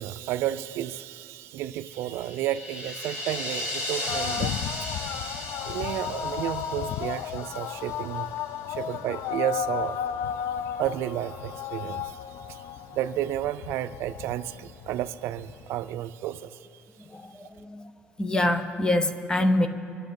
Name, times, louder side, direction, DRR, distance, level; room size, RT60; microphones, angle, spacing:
voice 1, 0.0-5.0 5.6-8.3 8.7-10.0 10.8-12.2 12.5-12.6 12.9-16.6, right 12 dB, 75° right, 13 dB, 0.4 m, -32 dB
sound 1, 2.0-8.2, left 1 dB, 90° left, 3.6 m, -36 dB
sound 2, 4.1-15.9, left 9 dB, 70° left, 0.4 m, -34 dB
voice 2, 17.1-17.9 18.2-19.7, left 1 dB, 15° left, 10 dB, 0.9 m, -25 dB
25.0 x 9.8 x 5.3 m, 2.6 s
cardioid pair, 125°, 4 cm